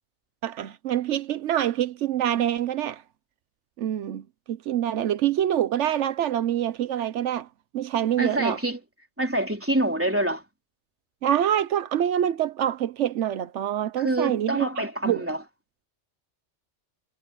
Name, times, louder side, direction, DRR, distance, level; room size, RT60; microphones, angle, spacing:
voice 1, 0.4-3.0 3.8-7.5 7.7-8.6 11.2-15.3, right 11 dB, 80° right, 1.0 m, -26 dB
voice 2, 8.2-8.8 9.2-10.4 14.0-15.4, right 1 dB, 10° right, 3.6 m, -26 dB
omnidirectional pair, 1.2 m